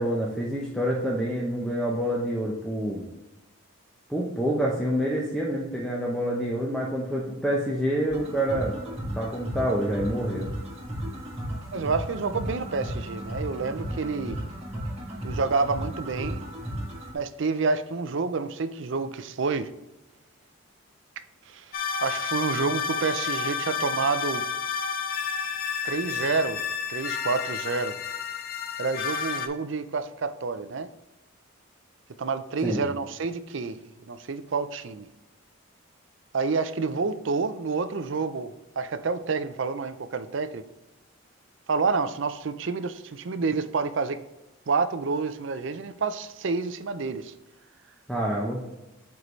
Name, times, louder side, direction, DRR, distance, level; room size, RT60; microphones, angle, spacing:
voice 1, 0.0-3.0 4.1-8.8 9.1-10.5 32.6-32.8 48.1-48.6, equal, ahead, 0.7 m, -27 dB
sound 1, 8.1-17.1, equal, 30° right, 1.4 m, -34 dB
voice 2, 11.7-14.4 15.2-16.4 17.1-19.7 21.5-21.7 22.0-24.4 25.8-26.6 26.9-28.0 28.8-30.9 32.2-33.8 34.1-35.1 36.3-40.6 41.7-44.2 44.7-47.3, right 4 dB, 60° right, 0.5 m, -28 dB
sound 2, 21.7-29.5, left 6 dB, 45° left, 0.6 m, -30 dB
7.5 x 4.7 x 3.1 m
head